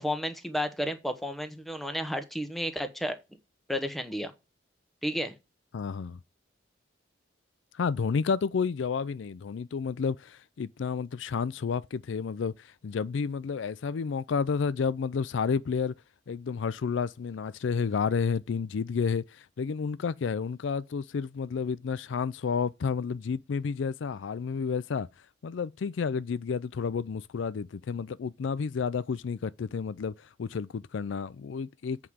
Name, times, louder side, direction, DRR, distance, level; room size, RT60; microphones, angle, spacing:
voice 1, 0.0-3.2 3.7-4.3 5.0-5.3, equal, ahead, 0.9 m, -32 dB
voice 2, 5.7-6.2 7.7-15.9 16.3-25.1 25.4-32.0, left 5 dB, 75° left, 0.4 m, -31 dB
7.8 x 4.8 x 7.2 m
head